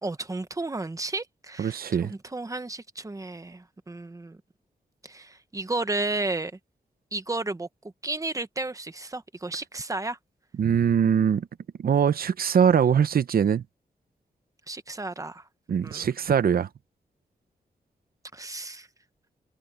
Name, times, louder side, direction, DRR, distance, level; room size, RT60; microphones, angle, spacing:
voice 1, 0.0-4.4 5.0-6.5 7.1-7.7 8.0-10.2 14.7-15.4 15.8-16.0 18.3-18.9, right 2 dB, 20° right, 1.0 m, -33 dB
voice 2, 1.6-2.1 10.6-11.5 11.8-13.6 15.7-16.7, right 7 dB, 70° right, 0.8 m, -22 dB
wide cardioid pair, 130°, 16 cm